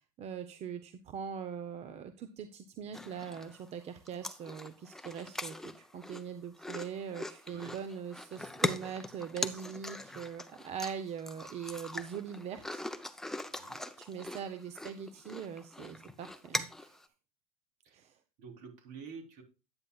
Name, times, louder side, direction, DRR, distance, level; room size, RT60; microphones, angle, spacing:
voice 1, 0.2-12.8 14.0-17.0 17.9-18.2, right 7 dB, 35° right, 9 dB, 0.8 m, -42 dB
sound 1, 2.9-3.7 4.1-17.1, left 1 dB, ahead, 0.6 m, -41 dB
voice 2, 7.5-7.8 13.4-13.8 17.8-18.0 18.4-19.4, right 5 dB, 60° right, 3 dB, 3.7 m, -49 dB
9.8 x 9.6 x 2.3 m, 0.30 s
supercardioid pair, 130°, 19 cm